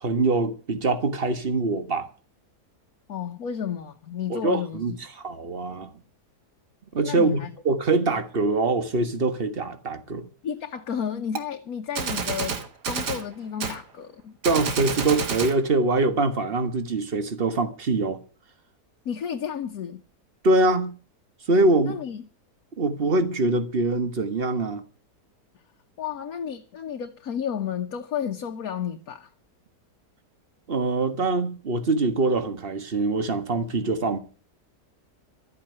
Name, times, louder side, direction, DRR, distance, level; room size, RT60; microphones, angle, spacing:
voice 1, 0.0-2.1 4.3-4.9 5.2-5.9 6.9-7.4 7.7-10.3 14.4-18.2 20.4-21.0 21.5-22.0 22.8-24.8 30.7-34.2, right 2 dB, 35° right, 1.6 m, -24 dB
voice 2, 3.1-4.8 7.0-7.5 10.4-14.4 19.0-20.0 21.8-22.2 26.0-29.3, left 8 dB, 65° left, 1.4 m, -32 dB
Gunshot gunfire, 11.4-11.5 12.0-13.3 13.6-13.8 14.4-15.6, right 6 dB, 80° right, 2.1 m, -29 dB
13.0 x 8.6 x 9.4 m
omnidirectional pair, 1.7 m